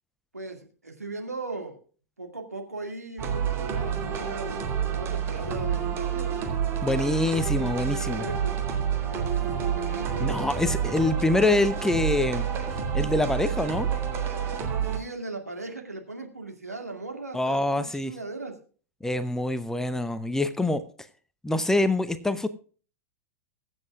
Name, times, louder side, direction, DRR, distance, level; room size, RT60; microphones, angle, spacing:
voice 1, 0.3-1.8 2.2-6.4 7.9-10.8 14.8-18.6 20.7-20.8, right 2 dB, 85° right, 3 dB, 2.2 m, -38 dB
sound 1, 3.2-15.0, right 8 dB, 30° right, 2.4 m, -28 dB
voice 2, 6.8-8.2 10.2-12.5 12.9-13.9 17.3-18.1 19.0-20.8 21.4-22.5, left 2 dB, 5° left, 13 dB, 0.7 m, -25 dB
22.5 x 7.8 x 2.4 m, 0.39 s
figure-of-eight pair, 90°, 8 cm